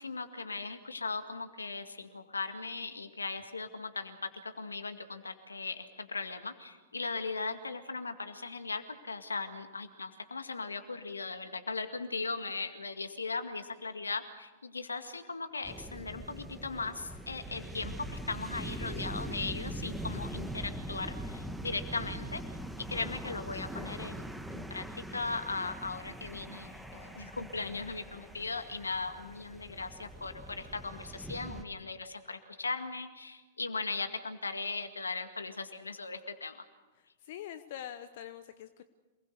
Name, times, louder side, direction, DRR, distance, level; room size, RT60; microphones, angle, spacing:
voice 1, 0.0-22.4 22.8-36.6, left 4 dB, 85° left, 7 dB, 2.0 m, -38 dB
sound 1, 15.6-31.6, right 1 dB, 5° right, 1.7 m, -42 dB
voice 2, 37.0-38.8, left 10 dB, 55° left, 10 dB, 1.1 m, -44 dB
27.5 x 20.5 x 6.7 m, 1.2 s
figure-of-eight pair, 100°, 0 cm